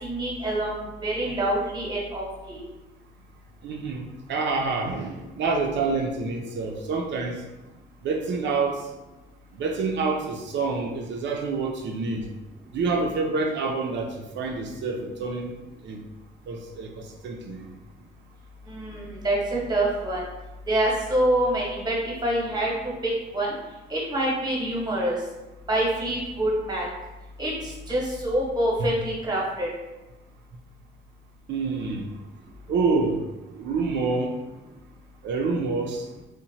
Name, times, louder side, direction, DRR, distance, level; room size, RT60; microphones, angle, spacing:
voice 1, 0.0-2.6 18.7-20.2 20.7-22.7 23.0-23.6 23.9-25.2 25.7-26.9 27.4-29.7, right 1 dB, 20° right, -4 dB, 0.9 m, -26 dB
voice 2, 3.6-7.4 8.0-8.9 9.5-12.3 12.7-15.6 15.8-16.0 16.5-17.7 28.8-28.9 31.5-32.1 32.7-33.2 33.5-34.3 35.2-36.1, right 4 dB, 65° right, 2 dB, 0.4 m, -27 dB
2.8 x 2.1 x 2.7 m, 1.0 s
cardioid pair, 90°, 20 cm